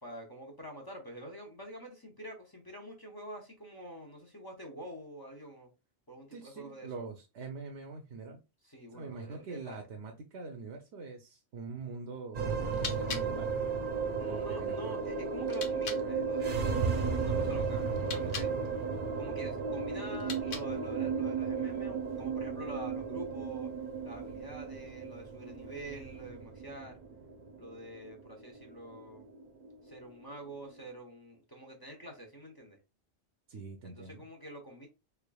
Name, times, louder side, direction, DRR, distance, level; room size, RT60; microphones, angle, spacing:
voice 1, 0.0-5.7 6.1-7.0 8.6-9.8 14.2-18.5 19.2-23.7 24.0-27.0 27.6-29.3 29.8-32.8 33.8-34.9, right 1 dB, 25° left, 0.6 m, -46 dB
voice 2, 6.3-8.4 8.9-13.6 14.3-15.0 33.5-34.3, right 4 dB, 80° right, 0.9 m, -44 dB
sound 1, 12.3-30.8, right 5 dB, 55° right, 0.7 m, -35 dB
sound 2, 12.7-16.1 17.9-18.6 20.1-20.9, left 5 dB, 55° left, 0.8 m, -44 dB
3.6 x 3.4 x 2.2 m
omnidirectional pair, 1.1 m